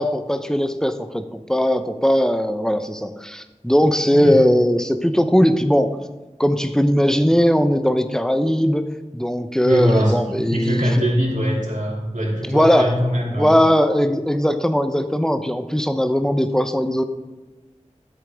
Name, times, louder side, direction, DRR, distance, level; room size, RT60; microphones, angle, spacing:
voice 1, 0.0-5.9 6.4-8.8 9.1-10.8 12.4-12.9 13.3-17.0, equal, 5° left, 8 dB, 0.8 m, -19 dB
voice 2, 9.6-13.6, equal, 85° right, -5 dB, 2.9 m, -22 dB
13.0 x 8.2 x 3.6 m, 1.1 s
wide cardioid pair, 45°, 13 cm